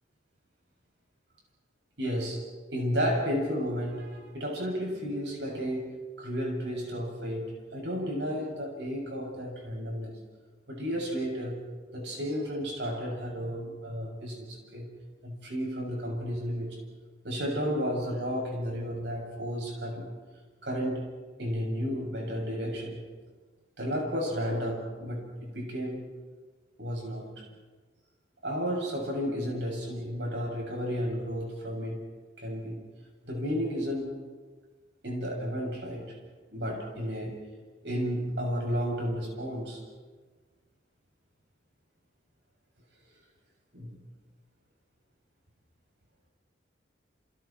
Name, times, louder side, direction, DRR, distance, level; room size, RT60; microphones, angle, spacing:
voice 1, 2.0-2.4 2.7-10.2 10.7-11.6 11.9-14.9 15.2-16.8 17.2-20.1 20.6-21.0 21.4-23.0 23.8-26.1 26.8-27.5 28.4-32.0 32.4-32.8 33.2-34.2 35.0-36.2 36.5-37.4 37.8-39.8 43.7-44.0, equal, 70° right, 0 dB, 7.8 m, -32 dB
30.0 x 29.0 x 4.6 m, 1.4 s
head